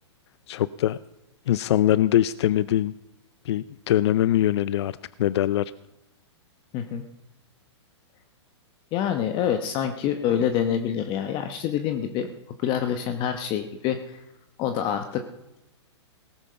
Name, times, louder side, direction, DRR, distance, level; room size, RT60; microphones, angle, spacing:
voice 1, 0.5-1.0 1.5-2.9 3.5-4.9 5.2-5.6, left 12 dB, 65° left, 17 dB, 0.4 m, -22 dB
voice 2, 6.7-7.0 8.9-12.3 12.6-14.2 14.6-15.2, left 9 dB, 35° left, 7 dB, 1.0 m, -26 dB
18.0 x 8.8 x 5.7 m, 0.91 s
hypercardioid pair, 130°, 15 cm